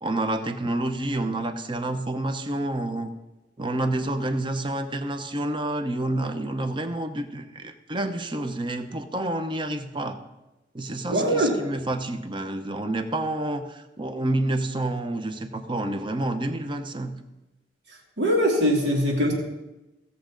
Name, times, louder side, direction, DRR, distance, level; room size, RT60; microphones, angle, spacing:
voice 1, 0.0-3.1 3.6-10.2 10.7-17.2, right 1 dB, 30° right, 8 dB, 0.8 m, -29 dB
voice 2, 11.1-11.5 18.2-19.3, equal, 85° right, -2 dB, 2.8 m, -21 dB
16.5 x 7.2 x 3.8 m, 1.0 s
head